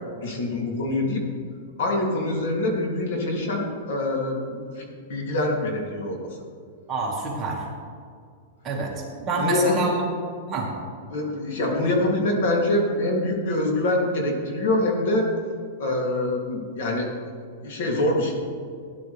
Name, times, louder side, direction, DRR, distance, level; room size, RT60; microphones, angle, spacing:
voice 1, 0.2-1.2 1.8-6.2 8.9-9.0 9.4-10.0 11.1-15.3 15.8-17.1 17.6-18.4, left 2 dB, 60° left, 0 dB, 2.9 m, -25 dB
voice 2, 6.9-7.7 8.6-10.0 10.5-10.7, right 3 dB, 20° right, -3 dB, 2.0 m, -27 dB
16.5 x 11.0 x 3.5 m, 2.2 s
supercardioid pair, 165°, 0 cm